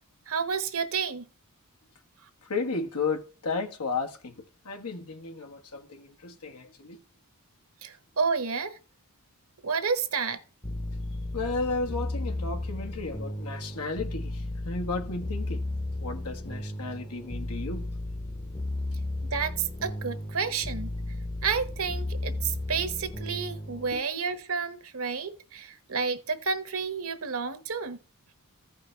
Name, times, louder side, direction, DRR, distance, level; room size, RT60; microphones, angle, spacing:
voice 1, 0.3-1.3 7.8-8.8 9.6-10.4 19.3-20.9 21.4-28.0, right 5 dB, 65° right, 1.2 m, -30 dB
voice 2, 2.5-7.0 11.3-15.6 16.0-17.9 23.9-24.1, left 3 dB, 85° left, 1.5 m, -34 dB
sound 1, 10.6-24.0, left 1 dB, 20° left, 0.8 m, -34 dB
15.0 x 5.3 x 3.3 m
head